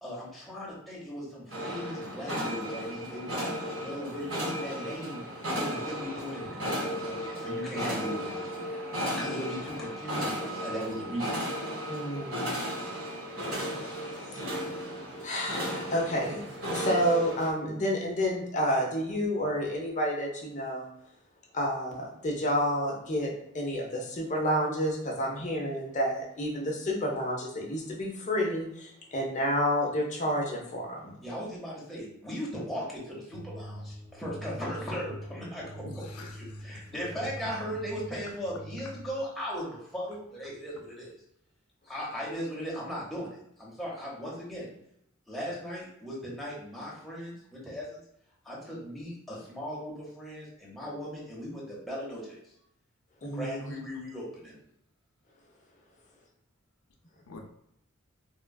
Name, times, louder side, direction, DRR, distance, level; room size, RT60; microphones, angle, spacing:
voice 1, 0.0-5.2 5.5-8.8 9.2-11.5 31.2-35.8 36.6-41.1 41.9-43.3 43.6-44.7 45.3-48.0 48.4-52.4 53.3-54.5, equal, ahead, -6 dB, 0.8 m, -38 dB
sound 1, 1.5-17.5, equal, 65° right, 1.4 m, -35 dB
voice 2, 11.9-12.6 14.3-14.4 15.2-16.4 16.7-20.9 21.5-31.1 53.2-53.8, equal, 35° left, -1 dB, 0.7 m, -30 dB
sound 2, 33.3-39.1, equal, 45° right, 1.0 m, -44 dB
voice 3, 35.9-36.6 37.4-37.5 57.3-57.4, left 3 dB, 90° left, 1 dB, 0.5 m, -46 dB
3.6 x 2.3 x 2.3 m, 0.74 s
head